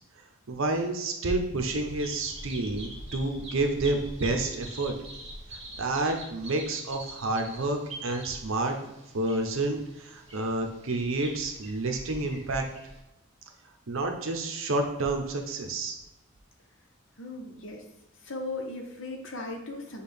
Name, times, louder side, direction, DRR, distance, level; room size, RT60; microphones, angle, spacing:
voice 1, 0.5-4.9 5.8-8.8 9.1-12.7 13.9-16.0, right 2 dB, 80° right, 4 dB, 0.6 m, -29 dB
Bird vocalization bird call bird song, 1.6-13.0, right 1 dB, 30° right, 1.0 m, -44 dB
voice 2, 17.2-17.8 18.2-20.0, left 2 dB, 70° left, 2 dB, 0.8 m, -37 dB
6.4 x 2.3 x 3.4 m, 0.93 s
head